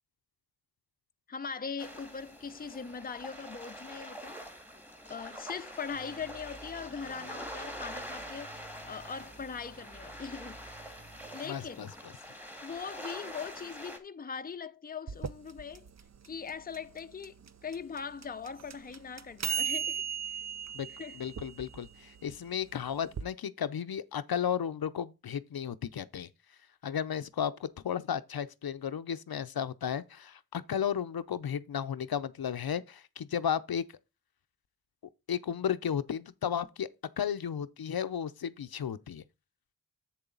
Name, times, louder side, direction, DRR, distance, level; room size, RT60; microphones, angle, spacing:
voice 1, 1.3-4.4 5.1-11.0 11.3-11.9 12.6-15.9 16.2-20.0 20.9-21.2, left 6 dB, 25° left, 0.5 m, -41 dB
sound 1, 1.8-14.0, equal, 5° right, 1.7 m, -45 dB
sound 2, 5.9-11.4, right 2 dB, 70° right, 1.8 m, -54 dB
voice 2, 11.5-11.9 20.7-20.9 21.2-26.3 26.8-33.8 35.3-36.9 37.2-39.2, left 8 dB, 75° left, 0.6 m, -34 dB
sound 3, 15.1-23.2, right 8 dB, 50° right, 0.5 m, -38 dB
7.6 x 7.0 x 3.8 m
wide cardioid pair, 80°, 37 cm